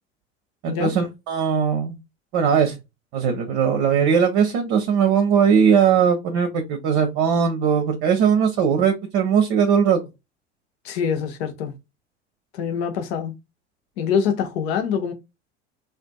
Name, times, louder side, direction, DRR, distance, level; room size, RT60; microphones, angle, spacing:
voice 1, 0.6-2.0 2.3-2.7 3.1-10.0, right 7 dB, 50° right, 0.7 m, -19 dB
voice 2, 10.8-11.7 12.5-13.3 14.0-15.1, left 7 dB, 60° left, 0.8 m, -24 dB
2.5 x 2.4 x 2.2 m
figure-of-eight pair, 65°, 35 cm